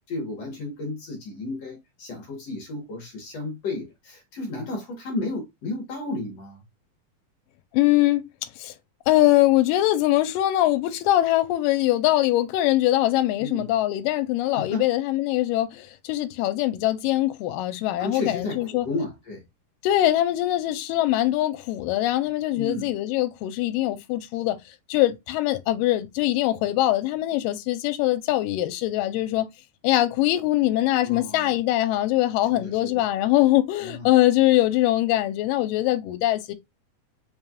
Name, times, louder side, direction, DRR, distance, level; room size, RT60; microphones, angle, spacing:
voice 1, 0.1-6.6 13.4-13.7 14.5-14.9 18.0-19.4 22.5-22.9 31.0-31.6 32.5-33.0 33.8-34.1, left 2 dB, 60° left, 2.0 m, -33 dB
voice 2, 7.7-8.3 8.6-8.7 9.1-18.9 19.8-29.5 29.8-36.6, left 15 dB, 85° left, 2.2 m, -22 dB
5.3 x 3.1 x 2.3 m
omnidirectional pair, 3.9 m